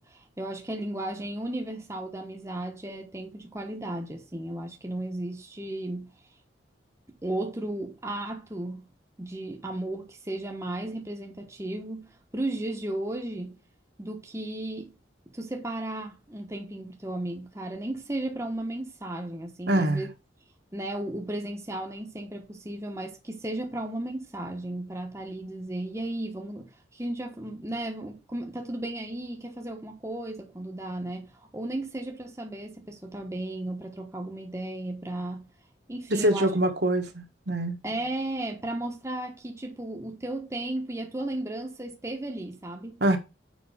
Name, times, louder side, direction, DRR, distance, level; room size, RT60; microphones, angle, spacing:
voice 1, 0.0-6.1 7.2-8.9 9.2-13.6 14.0-14.9 15.3-20.1 20.7-35.5 35.9-36.5 37.8-43.0, right 1 dB, 15° right, 1.1 m, -35 dB
voice 2, 19.7-20.1 36.2-37.8 43.0-43.2, right 1 dB, 60° right, 1.6 m, -24 dB
7.1 x 5.3 x 4.9 m
head